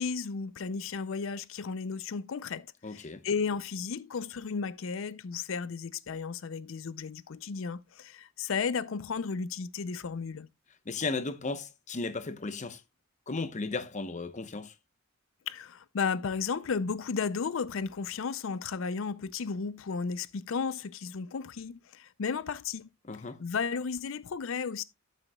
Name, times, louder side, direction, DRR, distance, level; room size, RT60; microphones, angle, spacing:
voice 1, 0.0-10.5 15.5-22.9 23.4-24.8, left 5 dB, 70° left, 0.5 m, -34 dB
voice 2, 2.8-3.2 10.9-12.8 13.3-14.7 23.0-23.4, left 3 dB, 35° left, 0.8 m, -35 dB
12.0 x 8.9 x 2.2 m
head